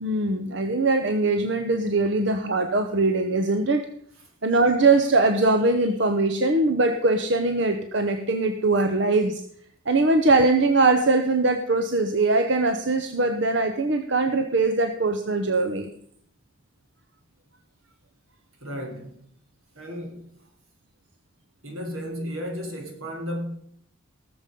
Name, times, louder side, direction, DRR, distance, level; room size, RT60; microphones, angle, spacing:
voice 1, 0.0-3.9 4.4-9.4 9.9-15.9, right 2 dB, 55° right, 0.9 m, -22 dB
voice 2, 18.6-19.3 19.8-20.3 21.6-23.5, equal, 85° right, 3.7 m, -34 dB
18.5 x 7.2 x 5.3 m
head